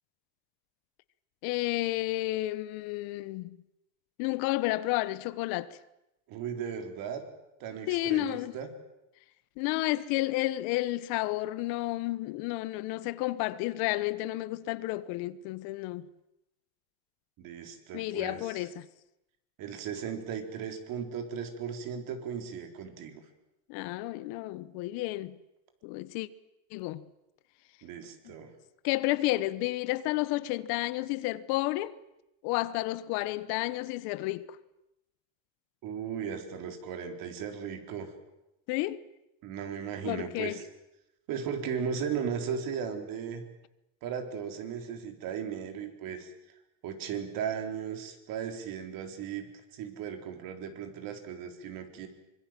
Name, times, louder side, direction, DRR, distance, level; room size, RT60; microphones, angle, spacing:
voice 1, 1.4-3.6 4.2-5.8 7.9-8.6 9.6-16.0 17.9-18.9 23.7-25.4 25.8-26.3 26.7-27.0 28.2-28.3 28.8-31.9 32.4-34.6 38.7-39.0 40.0-40.6, left 18 dB, 65° left, 1.2 m, -31 dB
voice 2, 6.3-7.2 7.6-8.7 17.4-18.7 19.6-23.2 27.8-28.5 35.8-38.1 39.4-40.6 41.3-43.4 44.0-46.3 46.8-52.1, right 7 dB, 55° right, 4.2 m, -36 dB
25.0 x 23.0 x 7.6 m
supercardioid pair, 135°, 41 cm